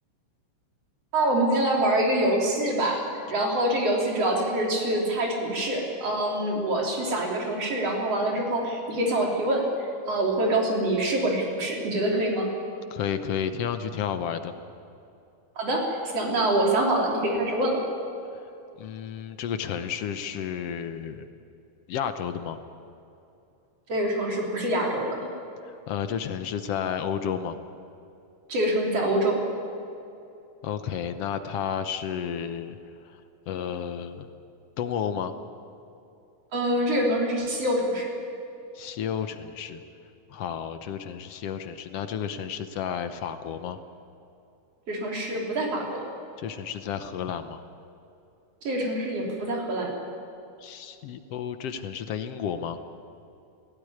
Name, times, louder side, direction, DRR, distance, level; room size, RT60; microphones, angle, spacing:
voice 1, 1.1-12.5 15.6-17.8 23.9-25.2 28.5-29.4 36.5-38.1 44.9-46.0 48.6-49.9, right 1 dB, 55° right, -1 dB, 4.3 m, -25 dB
voice 2, 12.9-14.5 18.3-18.4 18.8-21.3 21.9-22.6 25.6-27.6 30.6-34.3 34.8-35.3 38.7-39.8 40.3-43.8 46.4-47.6 50.6-52.8, left 8 dB, 65° left, 9 dB, 1.6 m, -32 dB
17.5 x 16.5 x 9.6 m, 2.7 s
omnidirectional pair, 3.4 m